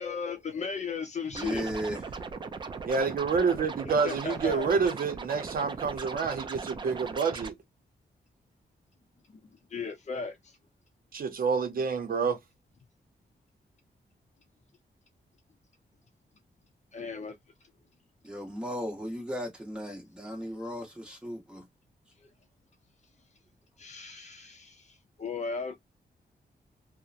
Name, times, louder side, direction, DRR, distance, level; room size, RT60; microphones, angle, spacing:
voice 1, 0.0-1.8 4.0-4.7 9.3-9.4 9.7-10.5 16.9-17.3 22.2-22.3 23.8-24.9 25.2-25.8, left 5 dB, 45° left, 0.6 m, -36 dB
Scratching (performance technique), 1.3-7.5, right 4 dB, 30° right, 0.3 m, -39 dB
voice 2, 1.4-2.0 18.2-21.6, equal, 5° right, 1.0 m, -36 dB
voice 3, 2.9-7.5 11.1-12.4, right 5 dB, 60° right, 0.7 m, -28 dB
2.8 x 2.1 x 2.4 m
wide cardioid pair, 165°, 17 cm